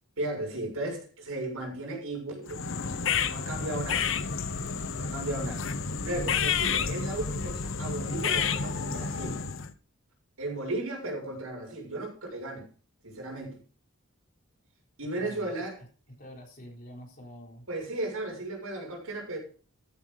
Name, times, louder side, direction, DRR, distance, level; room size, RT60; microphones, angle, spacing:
voice 1, 0.2-2.6 3.2-4.1 5.0-5.6 6.0-9.4 10.4-12.7 13.0-13.6 15.0-15.8 17.7-19.4, right 2 dB, 80° right, 6.8 m, -35 dB
sound 1, 2.5-9.7, left 6 dB, 60° left, 1.0 m, -30 dB
voice 2, 15.1-17.7, equal, 40° left, 4.0 m, -47 dB
14.0 x 8.6 x 4.0 m
head